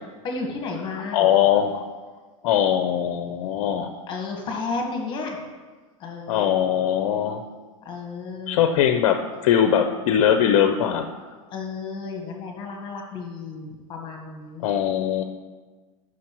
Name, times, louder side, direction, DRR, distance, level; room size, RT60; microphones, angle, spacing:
voice 1, 0.2-1.3 4.1-5.4 6.0-6.5 7.8-8.7 11.5-14.7, left 4 dB, 30° left, 1 dB, 1.3 m, -32 dB
voice 2, 1.1-1.8 2.4-3.9 6.3-7.4 8.5-11.1 14.6-15.2, left 9 dB, 55° left, 7 dB, 0.5 m, -21 dB
11.0 x 6.2 x 3.0 m, 1.4 s
supercardioid pair, 140°, 17 cm